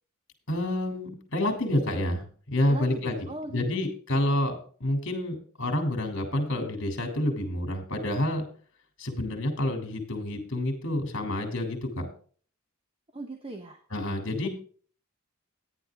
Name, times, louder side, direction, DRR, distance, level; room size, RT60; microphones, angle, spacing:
voice 1, 0.5-2.2 2.5-3.2 3.5-8.4 9.0-12.1 13.9-14.5, left 1 dB, 55° left, 4 dB, 3.1 m, -28 dB
voice 2, 2.7-3.6 13.1-13.8, right 1 dB, 25° right, 4 dB, 1.2 m, -39 dB
13.5 x 10.0 x 3.7 m, 0.44 s
head